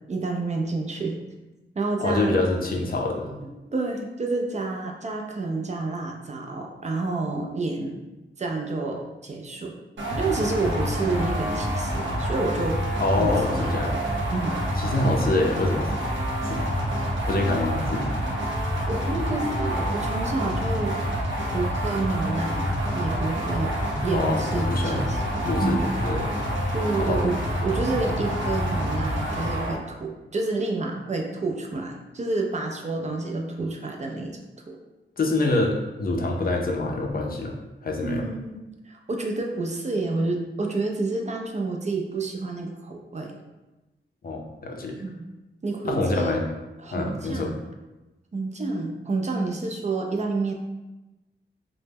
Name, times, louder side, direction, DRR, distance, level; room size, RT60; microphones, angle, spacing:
voice 1, 0.1-1.2 1.8-2.4 3.7-8.0 8.4-9.7 10.2-12.8 13.1-13.8 14.3-14.7 16.2-16.4 17.5-17.8 18.9-20.9 21.5-22.7 22.9-23.7 24.0-25.2 25.6-25.8 26.7-27.4 27.6-34.4 38.0-43.4 45.0-45.3 45.6-46.4 46.8-47.6 48.3-50.5, right 3 dB, 35° right, 1 dB, 0.4 m, -29 dB
voice 2, 2.0-3.4 13.0-13.9 14.8-15.9 16.4-16.6 17.3-18.1 24.1-25.2 25.4-26.3 27.0-27.2 35.2-37.6 37.8-38.2 44.2-45.0 45.8-46.4 46.9-47.5, left 2 dB, 50° left, 1 dB, 0.4 m, -26 dB
sound 1, 10.0-29.8, equal, 75° right, 0.7 m, -27 dB
2.1 x 2.0 x 3.3 m, 1.1 s
cardioid pair, 65°, 20 cm